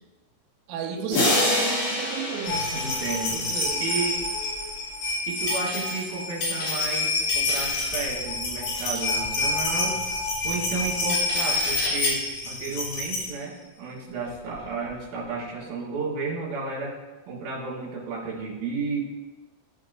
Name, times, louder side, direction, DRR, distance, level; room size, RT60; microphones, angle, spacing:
voice 1, 0.7-3.0 3.3-3.9, right 7 dB, 85° right, 2 dB, 3.1 m, -33 dB
sound 1, 1.1-3.8, left 1 dB, 50° left, 3.5 m, -26 dB
sound 2, 2.5-13.3 14.3-14.4 14.6-14.7, left 3 dB, 75° left, 4.8 m, -27 dB
voice 2, 2.7-3.4 3.8-4.2 5.3-10.0 10.4-17.0 17.3-19.0, right 4 dB, 60° right, -4 dB, 3.3 m, -32 dB
14.5 x 5.3 x 2.6 m, 1.2 s
omnidirectional pair, 5.6 m